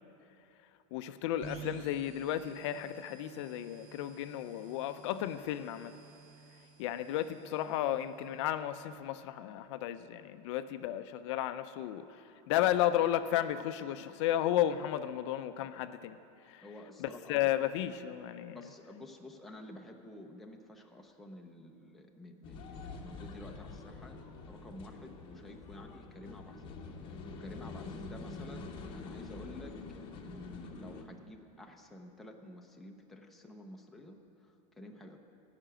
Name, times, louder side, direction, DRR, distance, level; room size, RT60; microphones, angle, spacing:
voice 1, 0.9-5.9 6.8-16.2 16.5-16.6 17.0-18.6, left 12 dB, 55° left, 11 dB, 0.4 m, -33 dB
sound 1, 1.4-9.0, right 5 dB, 75° right, 2.7 m, -52 dB
voice 2, 16.6-17.5 18.5-24.2 24.5-35.2, left 1 dB, ahead, 1 dB, 0.5 m, -51 dB
sound 2, 22.4-31.0, left 4 dB, 25° left, 0.8 m, -46 dB
14.0 x 5.9 x 8.9 m, 2.9 s
supercardioid pair, 170°, 18 cm